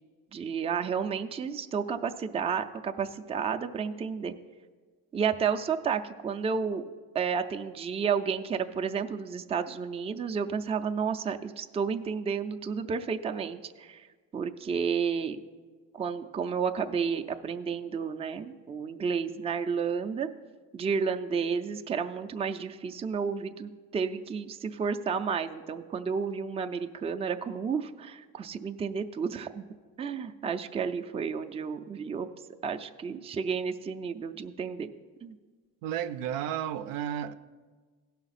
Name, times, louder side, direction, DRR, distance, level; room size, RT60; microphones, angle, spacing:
voice 1, 0.3-4.3 5.1-6.8 7.1-14.1 14.3-15.4 15.9-20.3 20.7-29.7 30.0-32.3 32.6-34.9 35.2-35.4, right 6 dB, 20° right, 0.4 m, -31 dB
voice 2, 35.8-37.3, right 10 dB, 80° right, 0.5 m, -32 dB
16.0 x 5.8 x 4.1 m
cardioid pair, 110°, 33 cm